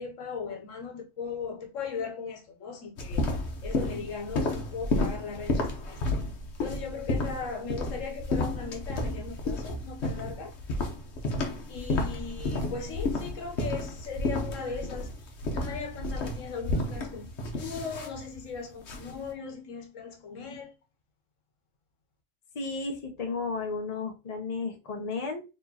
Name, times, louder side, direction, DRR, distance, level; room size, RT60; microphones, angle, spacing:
voice 1, 0.0-3.2 3.6-6.0 6.6-10.5 11.2-15.1 15.5-20.7, left 5 dB, 85° left, 1.3 m, -38 dB
sound 1, 3.0-19.2, left 2 dB, 65° left, 1.1 m, -32 dB
voice 2, 22.5-25.4, left 4 dB, 35° left, 0.8 m, -33 dB
4.2 x 3.1 x 2.8 m
omnidirectional pair, 1.3 m